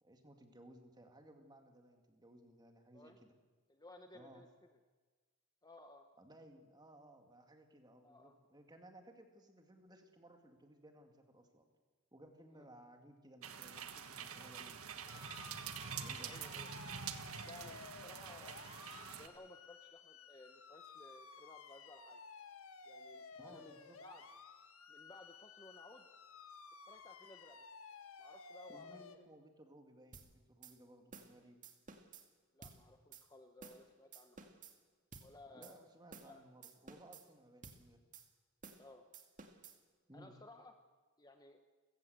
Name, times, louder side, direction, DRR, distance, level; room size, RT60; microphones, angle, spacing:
voice 1, 0.0-3.3 4.1-4.5 6.2-11.6 12.1-15.3 15.9-16.3 23.3-24.0 28.7-31.6 35.5-38.0 40.1-40.4, right 1 dB, 20° right, 5 dB, 2.4 m, -60 dB
voice 2, 3.7-4.5 5.6-6.1 8.0-8.3 12.5-12.6 16.3-16.7 17.4-22.2 22.8-24.2 24.9-26.1 26.8-27.7 28.2-29.2 32.5-34.5 35.2-35.9 36.2-36.4 38.8-39.1 40.1-40.8 41.2-41.6, left 2 dB, 15° left, 6 dB, 1.1 m, -58 dB
sound 1, 13.4-19.3, right 7 dB, 75° right, 1.5 m, -46 dB
sound 2, 15.1-29.2, left 5 dB, 70° left, 1.6 m, -55 dB
sound 3, 30.1-30.3 30.6-30.7 31.1-31.3 31.6-32.2 32.6-32.8 33.1-33.2 33.6-33.8 34.1-34.7 35.1-35.3 35.6-35.7 36.1-36.3 36.6-37.2 37.6-37.8 38.1-38.3 38.6-38.8 39.1-39.8, right 5 dB, 35° right, 2.1 m, -54 dB
29.5 x 15.5 x 8.0 m, 1.4 s
head